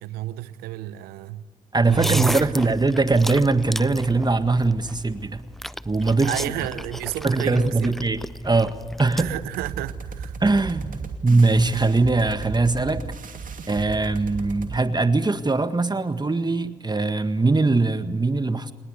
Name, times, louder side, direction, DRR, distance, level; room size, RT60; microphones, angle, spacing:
voice 1, 0.0-1.4 1.9-2.5 6.2-7.9 9.2-10.4, right 14 dB, 85° right, 17 dB, 0.8 m, -30 dB
voice 2, 1.7-5.4 5.8-6.3 7.2-9.3 10.4-13.0 13.7-18.7, right 3 dB, 25° right, 11 dB, 1.7 m, -21 dB
sound 1, 1.8-9.2, equal, ahead, 0.8 m, -34 dB
sound 2, 9.2-14.8, right 5 dB, 60° right, 2.6 m, -35 dB
28.5 x 20.0 x 8.1 m, 1.4 s
hypercardioid pair, 40°, 16 cm